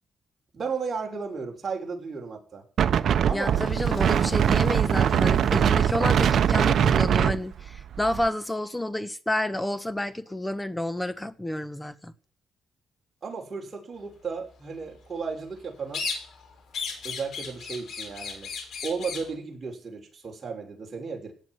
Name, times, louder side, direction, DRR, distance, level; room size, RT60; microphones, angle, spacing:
voice 1, 0.5-2.6 3.3-3.6 13.2-16.0 17.0-18.5 18.8-21.3, right 5 dB, 35° right, 6.5 m, -34 dB
Wind, 2.8-8.3, right 8 dB, 60° right, 1.0 m, -22 dB
Water / Toilet flush, 3.1-7.6, left 4 dB, 50° left, 5.5 m, -49 dB
voice 2, 3.3-12.1, left 1 dB, 10° left, 1.3 m, -30 dB
sound 1, 15.9-16.5 16.7-19.3, left 5 dB, 70° left, 6.2 m, -34 dB
17.0 x 7.4 x 9.5 m
cardioid pair, 120°, 0 cm